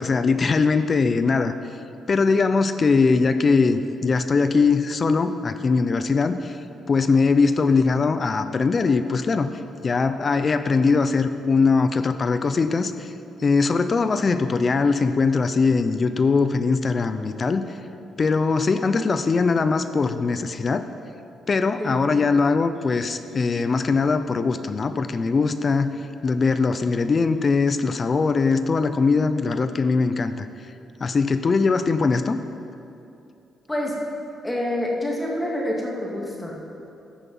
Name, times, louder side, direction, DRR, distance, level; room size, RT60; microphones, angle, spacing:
voice 1, 0.0-1.5 2.1-6.6 6.9-9.5 9.8-13.1 13.4-17.6 18.2-20.9 21.5-25.9 26.2-30.5 31.0-32.4, left 4 dB, 40° left, 11 dB, 0.5 m, -21 dB
voice 2, 34.4-36.5, left 1 dB, 10° left, -2 dB, 2.2 m, -27 dB
14.0 x 6.1 x 5.4 m, 2.7 s
cardioid pair, 90°, 0 cm